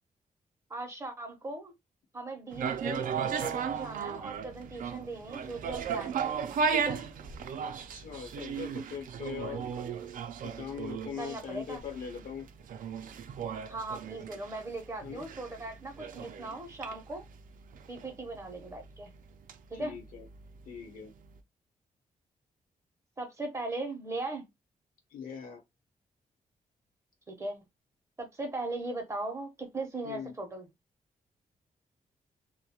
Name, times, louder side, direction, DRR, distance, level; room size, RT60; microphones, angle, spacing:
voice 1, 0.7-1.7 2.1-3.1 3.4-7.0 11.2-11.8 13.7-17.2 17.9-19.1 19.7-19.9 23.2-24.5 27.3-27.6 28.2-30.7, right 2 dB, 20° right, 0.6 m, -38 dB
sound 1, 2.5-20.6 21.0-21.1, right 6 dB, 70° right, 0.4 m, -36 dB
voice 2, 7.9-9.6 10.4-12.5 15.0-15.2 19.7-20.3 20.7-21.1 25.1-25.6 30.0-30.3, left 7 dB, 80° left, 0.8 m, -41 dB
2.3 x 2.1 x 2.8 m
wide cardioid pair, 170°, 14 cm